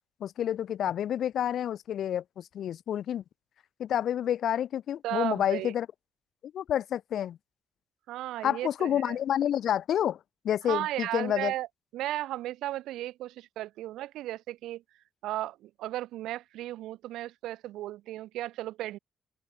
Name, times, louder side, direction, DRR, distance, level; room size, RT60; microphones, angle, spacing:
voice 1, 0.2-3.2 3.8-5.9 6.5-7.4 8.4-10.2 10.4-11.5, left 10 dB, 70° left, 0.4 m, -29 dB
voice 2, 5.0-5.7 8.1-9.2 10.7-11.7 11.9-14.8 15.2-19.0, right 15 dB, 90° right, 2.2 m, -35 dB
open air
cardioid pair, 90°, 0 cm